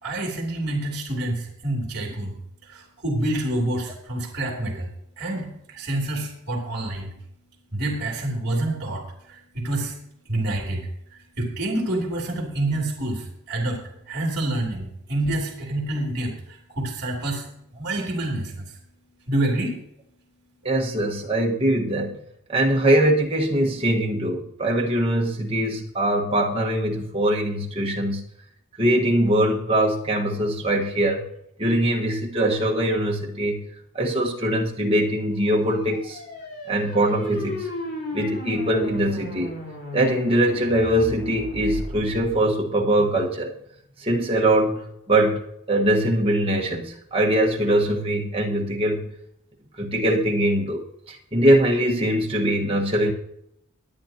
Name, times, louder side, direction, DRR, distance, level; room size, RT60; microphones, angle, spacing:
voice 1, 0.0-2.3 2.6-4.9 5.2-7.1 7.7-9.9 10.2-10.9 11.4-13.8 14.1-17.5 17.7-18.6 19.3-19.7, right 1 dB, 45° right, -2 dB, 3.1 m, -27 dB
voice 2, 20.6-22.2 22.5-28.2 28.8-31.2 31.6-33.6 33.9-36.2 36.7-37.7 38.1-39.5 39.9-43.5 44.0-49.1 49.8-53.1, right 1 dB, 25° right, -1 dB, 1.5 m, -22 dB
sound 1, 35.4-42.4, equal, 50° left, 3.7 m, -34 dB
22.5 x 8.6 x 2.9 m, 0.78 s
head